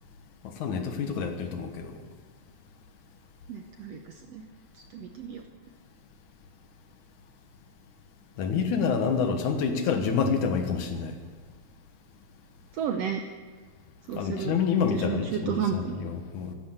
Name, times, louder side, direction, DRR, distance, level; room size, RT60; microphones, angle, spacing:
voice 1, 0.6-2.0 8.4-11.2 14.1-16.5, left 6 dB, 70° left, 6 dB, 2.7 m, -28 dB
voice 2, 3.5-4.0 4.3-4.4 4.9-5.4 12.8-13.2 14.1-14.5 14.9-16.0, right 7 dB, 75° right, 5 dB, 1.5 m, -31 dB
14.5 x 11.5 x 8.1 m, 1.5 s
omnidirectional pair, 3.7 m